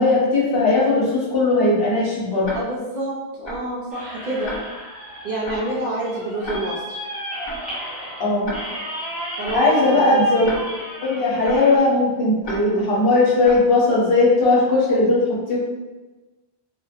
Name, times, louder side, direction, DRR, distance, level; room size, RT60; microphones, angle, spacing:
voice 1, 0.0-2.5 8.2-8.5 9.5-10.5 11.0-15.6, left 2 dB, 70° left, -5 dB, 0.9 m, -18 dB
Tick-tock, 2.4-2.6 3.4-3.6 4.4-4.6 5.4-5.6 6.4-6.6 7.4-7.6 8.4-8.6 9.4-9.6 10.4-10.6 11.4-11.6 12.4-12.6 13.4-13.6, left 1 dB, 45° left, 0.3 m, -32 dB
voice 2, 2.5-4.5 5.2-7.0 9.4-10.2 12.7-12.9, right 2 dB, 55° right, -5 dB, 0.5 m, -28 dB
sound 1, 3.9-11.8, equal, ahead, 1.0 m, -34 dB
2.8 x 2.2 x 2.4 m, 1.2 s
omnidirectional pair, 1.1 m